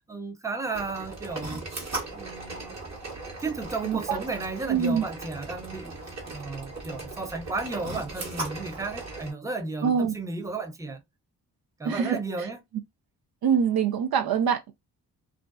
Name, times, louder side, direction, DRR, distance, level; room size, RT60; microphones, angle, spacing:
voice 1, 0.1-1.7 2.1-2.7 3.4-6.0 6.3-11.0 11.8-12.6, right 3 dB, 10° right, 0.6 m, -34 dB
sound 1, 0.7-9.3, right 2 dB, 40° right, 1.2 m, -38 dB
voice 2, 3.8-4.2 4.7-5.0 9.8-10.1 11.8-12.2 13.4-14.7, right 7 dB, 60° right, 0.5 m, -24 dB
2.5 x 2.1 x 2.3 m
supercardioid pair, 50°, 41 cm